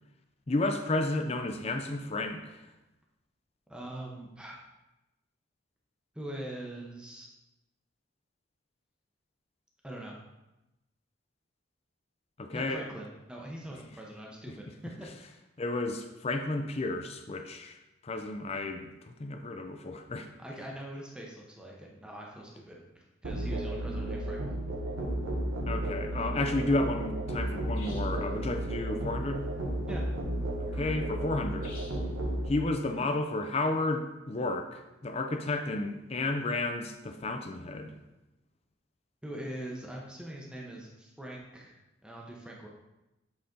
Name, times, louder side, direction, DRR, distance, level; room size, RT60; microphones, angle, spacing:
voice 1, 0.5-2.7 12.4-12.8 15.6-17.8 18.0-20.3 25.7-29.5 30.6-31.8 32.5-38.0, left 2 dB, 30° left, 6 dB, 0.5 m, -32 dB
voice 2, 3.7-4.6 6.1-7.3 9.8-10.1 12.5-15.3 20.4-24.6 29.9-30.1 39.2-42.7, right 1 dB, 5° right, -2 dB, 0.8 m, -43 dB
Musical instrument, 23.2-32.5, right 1 dB, 90° right, 1.2 m, -33 dB
sound 1, 27.7-28.2 31.6-32.1, left 3 dB, 85° left, 1.7 m, -49 dB
7.7 x 4.1 x 3.8 m, 0.97 s
head